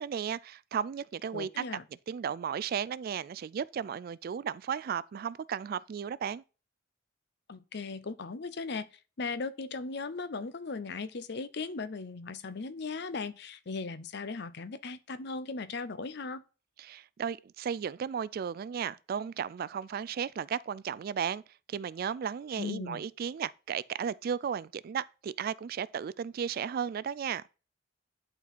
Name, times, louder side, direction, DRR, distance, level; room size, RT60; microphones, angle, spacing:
voice 1, 0.0-1.6 2.1-6.4 16.8-21.4 21.7-27.4, right 7 dB, 50° right, 0.3 m, -34 dB
voice 2, 1.3-1.8 7.5-8.9 9.2-16.4 22.6-23.0, left 4 dB, 60° left, 0.7 m, -37 dB
11.0 x 4.5 x 4.1 m
head